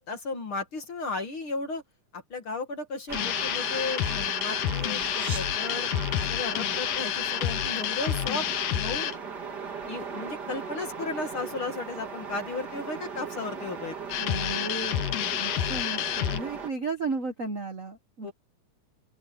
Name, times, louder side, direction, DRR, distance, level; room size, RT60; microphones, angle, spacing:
voice 1, 0.0-1.8 2.1-5.9 6.2-9.1 9.9-14.0 18.2-18.3, left 3 dB, 45° left, 2.6 m, -35 dB
sound 1, 3.1-9.2 14.1-16.4, left 12 dB, 90° left, 2.6 m, -29 dB
sound 2, 3.1-16.7, right 5 dB, 35° right, 2.7 m, -38 dB
voice 2, 14.2-15.0 15.3-18.3, right 3 dB, 85° right, 0.7 m, -34 dB
open air
omnidirectional pair, 3.5 m